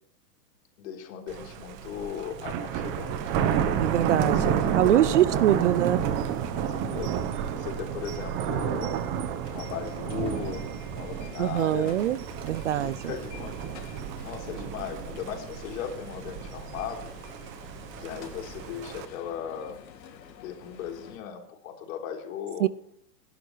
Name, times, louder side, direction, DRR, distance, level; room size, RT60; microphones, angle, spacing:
voice 1, 0.8-3.6 4.2-5.5 6.5-8.9 9.5-12.0 12.6-13.6 14.2-17.1 18.0-19.8 20.4-22.7, left 8 dB, 55° left, 3.6 m, -37 dB
Thunder, 1.3-19.1, right 8 dB, 25° right, 0.8 m, -31 dB
voice 2, 3.8-6.0 11.4-12.2 12.4-13.1 22.6-22.7, right 12 dB, 50° right, 0.4 m, -24 dB
sound 1, 9.4-21.2, left 7 dB, 90° left, 2.5 m, -49 dB
26.0 x 11.5 x 3.2 m
hypercardioid pair, 150°, 49 cm